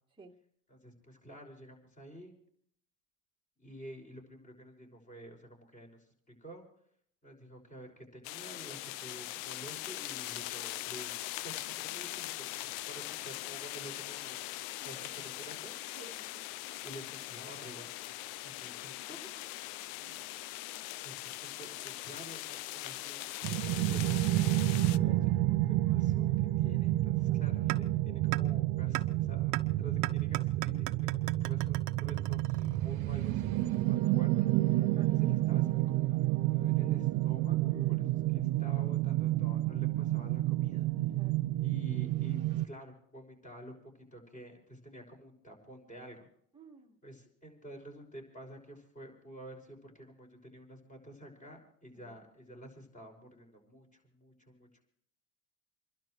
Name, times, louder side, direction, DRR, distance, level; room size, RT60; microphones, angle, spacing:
voice 1, 0.7-2.4 3.6-6.0 6.4-6.6 7.2-14.4 14.8-15.7 16.8-18.1 18.4-19.4 20.0-20.2 21.0-24.6 24.9-38.1 38.3-40.9 41.6-46.3 47.0-54.8, right 1 dB, 15° left, 3 dB, 6.0 m, -50 dB
sound 1, 8.2-25.0, left 16 dB, 65° left, 0.6 m, -41 dB
voice 2, 14.8-15.1 16.0-16.4 20.0-20.2 24.9-25.6 27.2-27.4 34.8-35.1 37.7-38.0 41.1-41.4 46.5-47.0 51.9-52.2, right 4 dB, 10° right, 0 dB, 2.0 m, -54 dB
sound 2, 23.4-42.7, right 16 dB, 45° right, 0.7 m, -30 dB
sound 3, 27.7-27.8 28.3-28.4 28.9-29.0 29.5-29.6 30.0-33.0, right 17 dB, 80° right, 1.2 m, -37 dB
29.5 x 12.0 x 3.2 m, 0.64 s
supercardioid pair, 115°, 46 cm